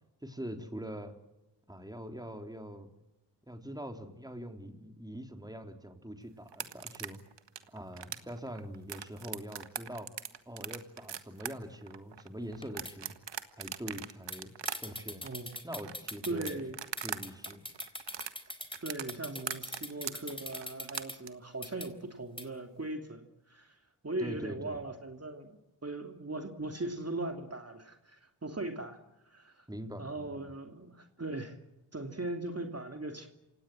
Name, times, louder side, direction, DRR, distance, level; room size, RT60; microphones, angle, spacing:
voice 1, 0.2-1.1 1.7-2.9 3.5-7.2 7.7-10.1 10.5-13.2 13.6-14.5 14.8-15.2 15.6-16.5 17.0-17.7 24.2-24.8 29.7-30.5, equal, 10° right, 5 dB, 3.6 m, -43 dB
sound 1, 6.5-17.2 17.5-21.3, right 8 dB, 80° right, 1.6 m, -40 dB
sound 2, 12.5-12.9 14.3-14.4 14.7-16.5 17.0-21.2 21.6-21.9 22.4-22.5, left 1 dB, 10° left, 3.9 m, -42 dB
voice 2, 15.2-15.5 16.2-16.8 18.8-29.0 29.3-29.6 30.0-31.6 31.9-33.3, right 2 dB, 35° right, 5 dB, 3.0 m, -39 dB
27.5 x 17.5 x 7.6 m, 0.95 s
cardioid pair, 50°, 42 cm